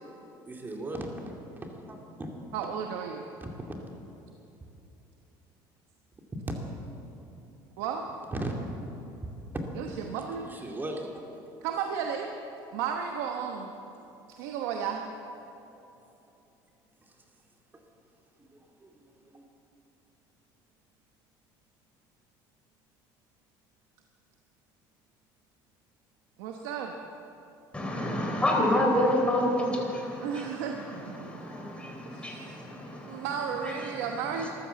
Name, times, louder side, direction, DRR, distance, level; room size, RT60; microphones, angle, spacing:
voice 1, 0.5-1.1 1.9-2.3 3.4-3.5 8.3-8.6 10.4-11.1 18.8-18.9 19.3-19.4, right 2 dB, 20° right, 1 dB, 2.4 m, -36 dB
voice 2, 2.5-3.3 7.8-8.1 9.8-10.5 11.6-12.3 12.7-13.7 14.3-15.0 26.4-27.0 30.2-31.3 32.1-32.4 33.1-34.5, right 7 dB, 90° right, 3 dB, 1.1 m, -33 dB
voice 3, 27.7-34.5, left 1 dB, 10° left, 0 dB, 3.8 m, -29 dB
14.5 x 12.5 x 7.1 m, 3.0 s
cardioid pair, 110°, 10 cm